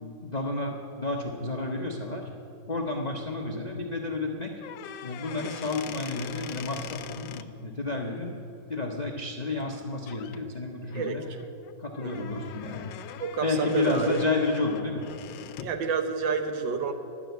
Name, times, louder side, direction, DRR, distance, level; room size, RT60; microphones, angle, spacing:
voice 1, 0.0-2.3 2.7-4.5 5.0-8.4 8.7-11.2 11.8-12.9 13.4-15.0, left 3 dB, 60° left, 0 dB, 0.4 m, -31 dB
sound 1, 4.5-7.5 9.6-9.8 10.1-10.4 10.9-15.8, left 10 dB, 80° left, 1.2 m, -42 dB
voice 2, 10.9-11.4 12.0-12.3 13.2-14.2 15.6-16.9, right 6 dB, 80° right, 6 dB, 1.6 m, -29 dB
11.0 x 6.1 x 9.2 m, 2.9 s
omnidirectional pair, 2.0 m